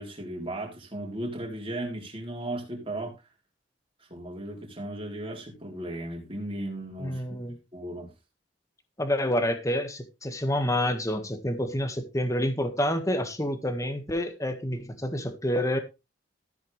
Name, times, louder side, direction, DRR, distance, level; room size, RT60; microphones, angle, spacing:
voice 1, 0.0-3.1 4.0-7.4 7.7-8.1, right 1 dB, 30° right, 3.7 m, -36 dB
voice 2, 7.0-7.6 9.0-15.8, left 1 dB, 15° left, 1.6 m, -28 dB
14.0 x 8.1 x 3.3 m
head